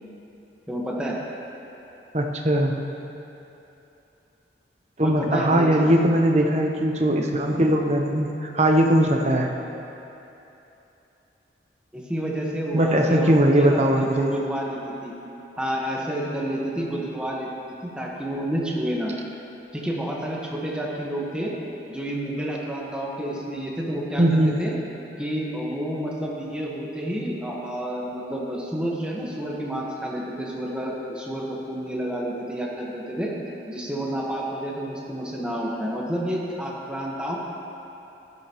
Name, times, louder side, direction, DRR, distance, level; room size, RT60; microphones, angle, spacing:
voice 1, 0.7-1.2 5.0-5.9 11.9-15.1 15.6-17.5 17.8-19.1 19.7-21.5 21.9-24.2 24.6-24.7 25.2-33.3 33.7-37.4, right 1 dB, 5° right, -4 dB, 1.4 m, -29 dB
voice 2, 2.1-2.7 5.0-9.5 12.7-14.3 24.2-24.6, right 1 dB, 35° right, 2 dB, 0.9 m, -20 dB
16.0 x 12.0 x 3.1 m, 3.0 s
head